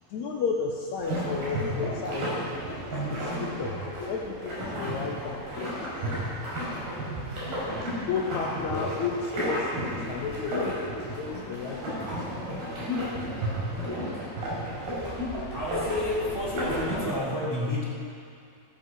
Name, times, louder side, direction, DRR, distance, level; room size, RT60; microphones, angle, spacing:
voice 1, 0.1-2.3 3.0-3.7 4.0-6.2 8.1-12.0 12.5-12.6, left 5 dB, 75° left, 0 dB, 1.7 m, -33 dB
sound 1, 1.0-17.2, equal, 75° right, 6.8 m, -32 dB
voice 2, 15.3-17.9, left 1 dB, 5° left, -8 dB, 3.0 m, -32 dB
15.0 x 14.0 x 6.3 m, 2.4 s
omnidirectional pair, 4.5 m